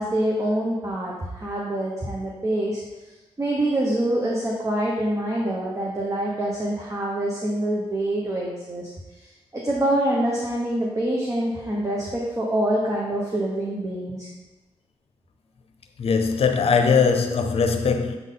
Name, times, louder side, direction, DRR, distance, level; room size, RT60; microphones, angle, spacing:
voice 1, 0.0-2.8 3.4-8.9 9.5-14.3, right 1 dB, 30° right, 1.1 m, -25 dB
voice 2, 16.0-18.2, left 5 dB, 70° left, 0.7 m, -20 dB
7.8 x 3.8 x 3.9 m
cardioid pair, 90°, 10 cm